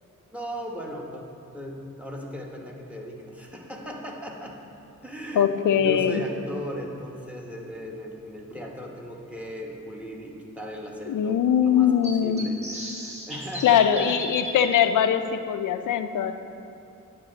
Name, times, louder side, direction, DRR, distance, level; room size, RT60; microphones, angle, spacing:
voice 1, 0.3-1.3 1.5-4.5 5.0-14.2, equal, 5° right, 0 dB, 1.2 m, -37 dB
voice 2, 5.4-6.2 11.1-12.5 13.6-16.3, left 9 dB, 75° left, 9 dB, 0.5 m, -21 dB
sound 1, 6.5-6.6 8.5-8.6 9.2-9.3 9.5-9.6 12.0-14.8, equal, 20° right, 1.5 m, -35 dB
9.7 x 6.7 x 4.0 m, 2.7 s
cardioid pair, 75°, 31 cm